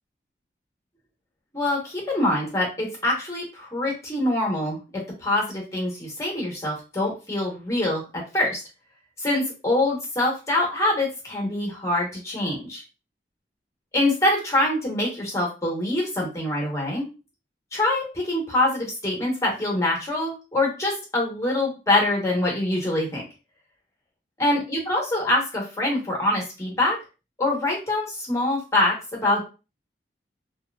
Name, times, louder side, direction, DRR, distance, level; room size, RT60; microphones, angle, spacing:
voice 1, 1.5-4.8 5.2-8.6 9.2-12.8 13.9-17.1 17.7-23.2 24.4-27.0 27.4-29.4, left 1 dB, 15° left, -3 dB, 1.0 m, -24 dB
2.8 x 2.3 x 2.3 m, 0.31 s
head